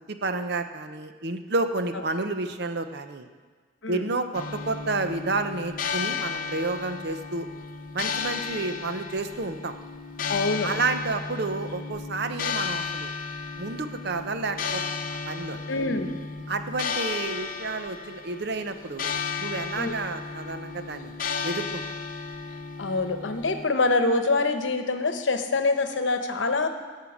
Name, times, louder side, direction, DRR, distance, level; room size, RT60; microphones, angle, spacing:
voice 1, 0.1-3.3 3.9-7.5 7.9-9.7 10.6-13.1 13.6-14.8 15.3-15.6 16.5-19.1 19.4-21.1 21.4-21.8, right 3 dB, 55° right, 8 dB, 0.7 m, -30 dB
sound 1, 4.3-23.6, left 5 dB, 45° left, 0.8 m, -34 dB
voice 2, 10.3-10.8 15.7-16.2 19.8-19.9 22.8-26.7, left 3 dB, 75° left, 7 dB, 0.9 m, -25 dB
16.5 x 5.7 x 7.2 m, 1.5 s
head